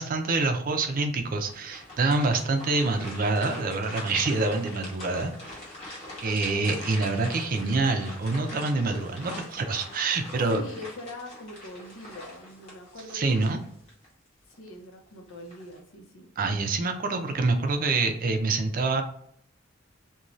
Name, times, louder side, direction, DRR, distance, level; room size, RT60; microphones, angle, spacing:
voice 1, 0.0-5.6 6.2-10.6 13.1-13.6 16.4-19.0, right 3 dB, 45° right, 6 dB, 0.4 m, -26 dB
sound 1, 1.5-14.1 14.5-14.7 15.3-15.8, left 1 dB, 35° left, 1.0 m, -42 dB
voice 2, 10.5-13.6 14.5-16.3, left 1 dB, 85° left, 3 dB, 0.7 m, -43 dB
2.5 x 2.2 x 3.0 m, 0.66 s
head